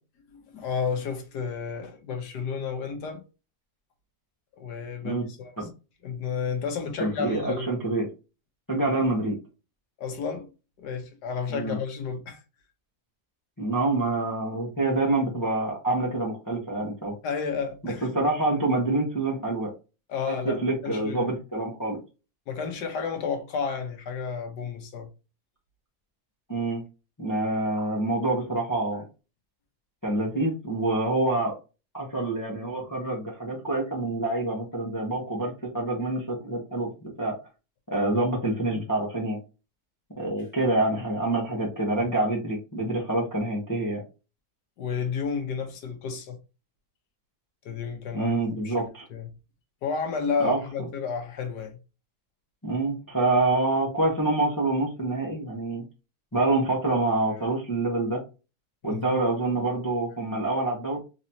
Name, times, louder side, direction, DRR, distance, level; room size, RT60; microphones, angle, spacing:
voice 1, 0.3-3.2 4.6-5.5 6.0-7.7 10.0-10.5 10.8-12.4 17.2-18.1 20.1-21.3 22.5-25.1 44.8-46.4 47.6-48.4 48.6-49.3 49.8-51.8 58.8-59.2, left 6 dB, 85° left, 1.5 m, -31 dB
voice 2, 7.0-8.1 8.7-9.4 11.5-11.8 13.6-17.1 17.8-19.7 20.3-22.0 26.5-26.8 27.2-29.0 30.0-31.6 31.9-37.3 37.9-39.4 40.2-44.0 48.1-49.1 50.4-50.6 52.6-55.8 56.3-58.2 58.8-61.0, right 2 dB, 15° left, 0.8 m, -26 dB
4.0 x 2.8 x 2.8 m
omnidirectional pair, 1.7 m